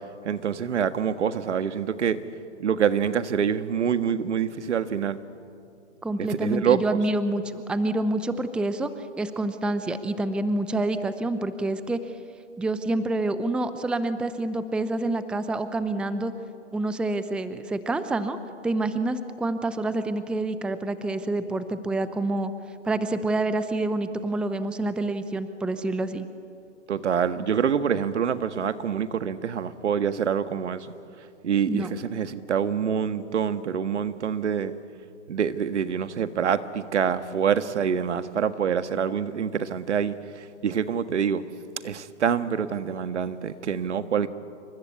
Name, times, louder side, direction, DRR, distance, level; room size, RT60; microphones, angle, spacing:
voice 1, 0.2-2.2 2.6-5.2 6.2-7.0 26.9-30.9 31.4-34.7 35.3-41.4 41.8-44.3, right 7 dB, 70° right, 11 dB, 1.6 m, -26 dB
voice 2, 6.0-8.9 9.2-12.0 12.6-16.3 16.7-18.4 18.6-22.5 22.8-26.3 31.7-31.9, right 2 dB, 5° right, 11 dB, 0.7 m, -27 dB
27.5 x 25.0 x 8.5 m, 2.5 s
hypercardioid pair, 125°, 36 cm